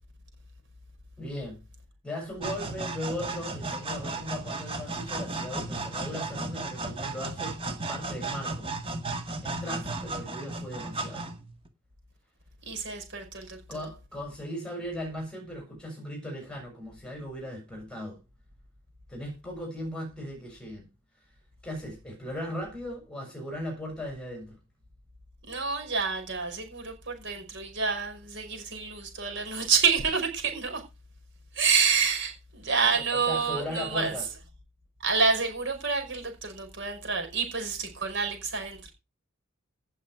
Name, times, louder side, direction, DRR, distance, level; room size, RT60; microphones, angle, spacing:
voice 1, 1.2-1.6 2.0-7.6 7.9-8.7 9.4-11.3 13.7-18.2 19.1-20.9 21.6-24.6 32.9-34.3, left 1 dB, 5° left, 6.8 m, -37 dB
sound 1, 2.4-11.7, right 3 dB, 25° right, 2.0 m, -35 dB
voice 2, 12.7-13.6 25.5-30.8 31.6-34.1 35.0-38.9, right 5 dB, 60° right, 5.5 m, -28 dB
17.5 x 7.4 x 4.9 m
head